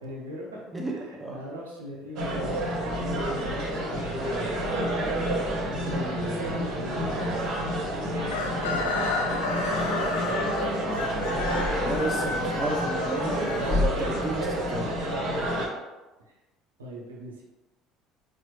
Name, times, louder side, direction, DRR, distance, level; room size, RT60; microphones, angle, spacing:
voice 1, 0.0-4.9 5.7-8.2 10.9-11.2 15.6-15.8 16.3-16.4 16.8-17.4, equal, 85° right, -3 dB, 0.6 m, -41 dB
sound 1, 2.2-15.7, equal, 60° right, 0.9 m, -29 dB
Chicken rooster, 8.3-14.2, left 3 dB, 75° left, 0.4 m, -31 dB
voice 2, 9.6-10.1 11.8-14.9, right 1 dB, 20° right, -1 dB, 0.8 m, -33 dB
4.2 x 2.0 x 3.0 m, 1.1 s
hypercardioid pair, 60°, 0 cm